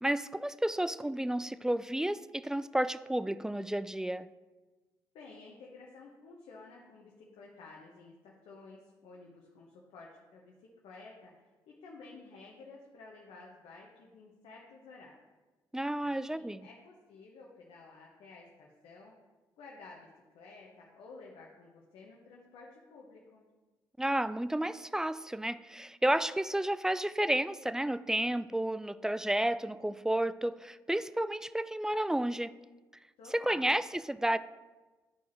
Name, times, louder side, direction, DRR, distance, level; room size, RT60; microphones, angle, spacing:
voice 1, 0.0-4.3 15.7-16.7 24.0-32.5 33.3-34.4, right 1 dB, 5° right, 15 dB, 0.3 m, -31 dB
voice 2, 5.1-10.5 10.8-11.3 11.7-15.2 16.0-19.1 19.6-23.5 33.2-33.8, left 3 dB, 75° left, -2 dB, 1.0 m, -53 dB
11.0 x 4.7 x 3.0 m, 1.2 s
hypercardioid pair, 50°, 10 cm